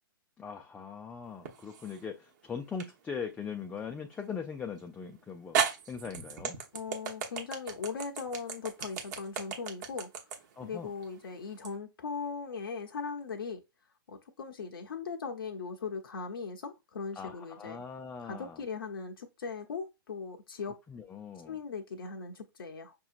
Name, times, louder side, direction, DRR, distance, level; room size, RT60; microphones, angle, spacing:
voice 1, 0.4-5.6 5.9-6.6 10.6-10.9 17.2-18.6 20.9-21.6, left 6 dB, 10° left, 0.4 m, -40 dB
sound 1, 1.4-2.0 2.8-2.9 4.8-4.9 5.5-11.7, right 7 dB, 50° right, 1.1 m, -34 dB
voice 2, 6.7-10.1 10.6-13.6 14.1-17.8 18.2-20.8 21.5-22.9, left 5 dB, 75° left, 0.8 m, -39 dB
6.0 x 2.8 x 2.5 m
hypercardioid pair, 130°, 12 cm